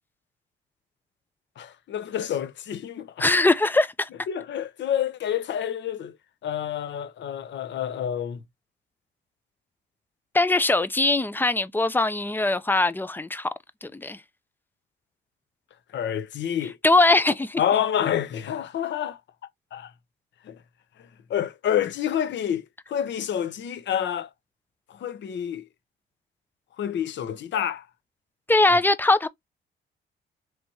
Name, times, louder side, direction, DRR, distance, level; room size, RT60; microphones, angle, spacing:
voice 1, 1.6-3.2 4.3-6.2 6.4-8.4 15.9-16.8 17.6-19.2 19.7-19.9 20.4-20.6 21.3-24.3 24.9-25.6 26.8-27.8, left 9 dB, 65° left, 0.9 m, -28 dB
voice 2, 3.2-4.1 10.3-13.5 13.8-14.2 16.8-17.6 28.5-29.3, left 2 dB, 10° left, 0.5 m, -21 dB
4.5 x 3.4 x 2.7 m
cardioid pair, 90°, 20 cm